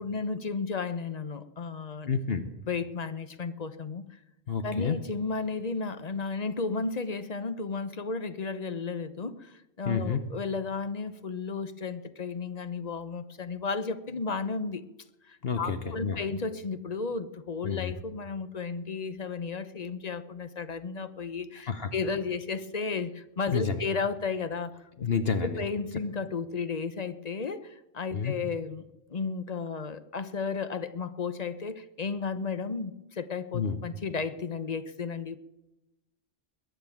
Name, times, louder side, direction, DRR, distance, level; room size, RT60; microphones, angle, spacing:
voice 1, 0.0-2.1 2.7-4.2 4.6-14.8 15.2-24.8 25.4-35.4, left 4 dB, 40° left, 12 dB, 0.8 m, -33 dB
voice 2, 2.1-2.5 4.5-5.0 9.9-10.2 15.4-16.2 17.6-17.9 21.7-21.9 23.5-23.8 25.0-25.6 28.1-28.3 33.5-33.8, left 6 dB, 55° left, 9 dB, 1.1 m, -29 dB
21.5 x 9.2 x 7.2 m, 0.99 s
omnidirectional pair, 1.2 m